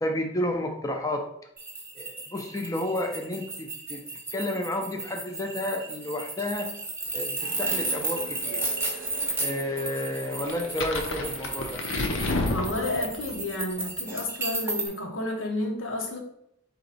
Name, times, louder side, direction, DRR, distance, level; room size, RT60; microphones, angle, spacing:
voice 1, 0.0-1.3 1.9-4.0 4.3-6.8 7.1-8.6 9.4-11.8, left 1 dB, 15° left, 3 dB, 0.4 m, -31 dB
sound 1, 1.6-14.9, right 2 dB, 10° right, 0.8 m, -33 dB
sound 2, 7.4-12.7, right 4 dB, 80° right, 0.6 m, -43 dB
sound 3, 10.5-13.4, left 2 dB, 70° left, 0.6 m, -30 dB
voice 2, 12.5-16.2, left 2 dB, 90° left, 1 dB, 0.9 m, -31 dB
4.3 x 2.9 x 4.0 m, 0.74 s
head